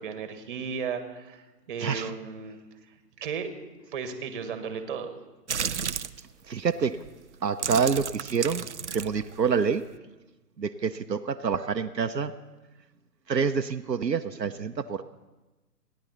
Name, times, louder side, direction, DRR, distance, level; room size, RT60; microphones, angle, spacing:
voice 1, 0.0-2.6 3.2-3.5 3.9-5.1, right 6 dB, 30° right, 9 dB, 1.4 m, -35 dB
voice 2, 1.8-2.1 6.5-7.0 7.4-8.7 8.9-9.8 10.6-12.3 13.3-15.0, right 6 dB, 85° right, 8 dB, 0.8 m, -27 dB
sound 1, 5.5-6.2 7.0-7.1 7.5-10.0, right 7 dB, 50° right, 0.4 m, -33 dB
29.5 x 10.5 x 4.0 m, 1.1 s
figure-of-eight pair, 130°, 49 cm